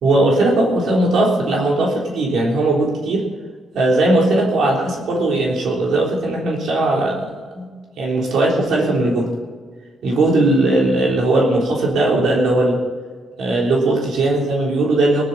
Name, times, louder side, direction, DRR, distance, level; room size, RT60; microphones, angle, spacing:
voice 1, 0.0-3.3 3.7-9.3 10.0-12.8 13.4-15.2, right 2 dB, 75° right, -2 dB, 3.3 m, -18 dB
20.5 x 12.0 x 4.1 m, 1.5 s
cardioid pair, 120°, 0 cm